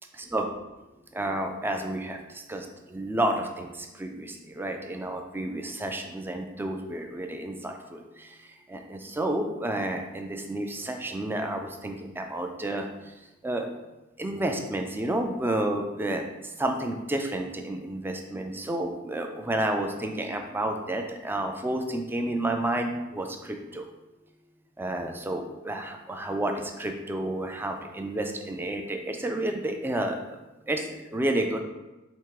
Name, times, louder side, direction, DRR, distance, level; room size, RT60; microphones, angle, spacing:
voice 1, 1.1-13.7 14.2-23.9 24.8-30.4 30.7-31.6, right 1 dB, 10° right, 4 dB, 0.3 m, -31 dB
3.5 x 2.8 x 4.6 m, 1.0 s
head